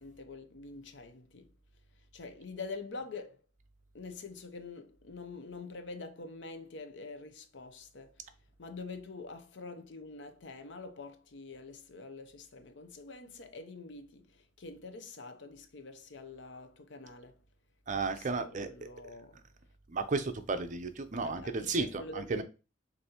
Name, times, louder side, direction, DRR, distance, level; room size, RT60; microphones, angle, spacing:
voice 1, 0.0-1.5 2.1-3.4 3.9-8.2 8.6-17.4 18.1-19.4 21.2-22.4, left 3 dB, 70° left, 0.6 m, -46 dB
voice 2, 17.9-18.9 19.9-22.4, right 3 dB, 40° right, 0.5 m, -33 dB
6.5 x 2.6 x 2.8 m
head